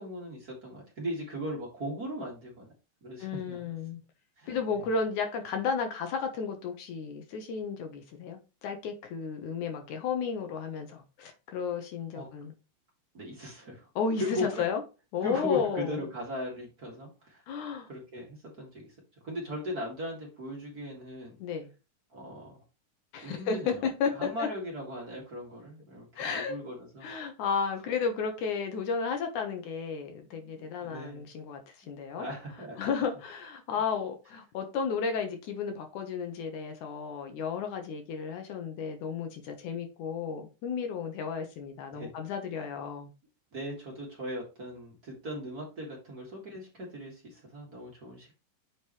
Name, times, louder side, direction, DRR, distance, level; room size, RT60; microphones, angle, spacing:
voice 1, 0.0-2.7 3.0-3.7 4.4-4.6 12.1-12.3 13.1-13.9 14.2-14.6 15.2-17.4 17.9-19.0 19.2-21.4 22.1-22.6 23.2-23.8 24.1-27.1 30.3-31.2 32.2-32.9 41.9-42.1 42.5-42.7 43.5-48.3, left 1 dB, 30° right, 2.1 m, -38 dB
voice 2, 3.2-4.0 4.5-12.5 14.0-14.8 15.1-16.0 17.5-17.9 21.4-21.7 23.1-24.5 26.2-26.6 27.0-31.6 31.9-32.3 32.8-43.1, left 5 dB, 70° left, 2.5 m, -33 dB
7.7 x 5.3 x 3.1 m
omnidirectional pair, 3.8 m